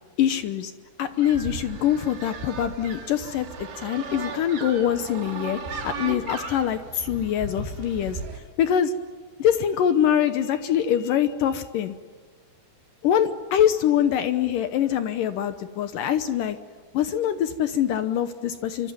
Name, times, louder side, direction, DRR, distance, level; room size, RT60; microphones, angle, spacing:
voice 1, 0.2-0.7 1.0-5.6 5.8-8.2 8.6-8.9 9.4-12.0 13.0-16.6 16.9-18.9, left 10 dB, 70° left, 10 dB, 2.1 m, -24 dB
sound 1, 1.0-8.4, right 4 dB, 80° right, 6.3 m, -36 dB
26.0 x 24.5 x 9.5 m, 1.5 s
omnidirectional pair, 4.9 m